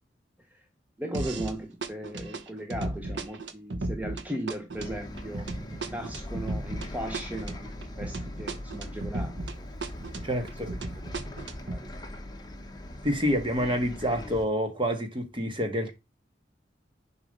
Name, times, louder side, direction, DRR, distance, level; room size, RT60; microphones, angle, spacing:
voice 1, 1.0-5.5 5.9-9.7 10.6-10.7 11.6-12.0, right 1 dB, 10° right, 0.9 m, -37 dB
sound 1, 1.1-1.6 1.8-9.6 9.8-11.8, right 2 dB, 70° right, 1.1 m, -35 dB
Bus, 4.8-14.5, left 1 dB, 25° left, 1.2 m, -41 dB
voice 2, 10.2-10.7 13.0-15.9, equal, 30° right, 1.7 m, -28 dB
7.0 x 4.9 x 5.4 m
head